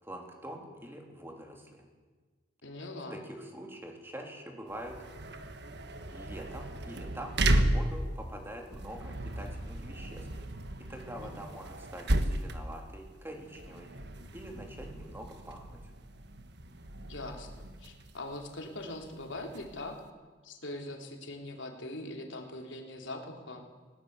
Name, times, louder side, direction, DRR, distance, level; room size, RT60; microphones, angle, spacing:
voice 1, 0.0-1.9 3.1-5.0 6.1-10.3 10.9-13.9 14.3-15.8, right 1 dB, 10° right, 1 dB, 3.4 m, -45 dB
voice 2, 2.6-3.2 11.2-11.4 17.0-20.0 20.4-23.6, left 1 dB, 80° left, 2 dB, 3.4 m, -42 dB
sound 1, 4.7-20.1, right 1 dB, 60° right, 1.5 m, -35 dB
19.5 x 18.5 x 8.2 m, 1.4 s
head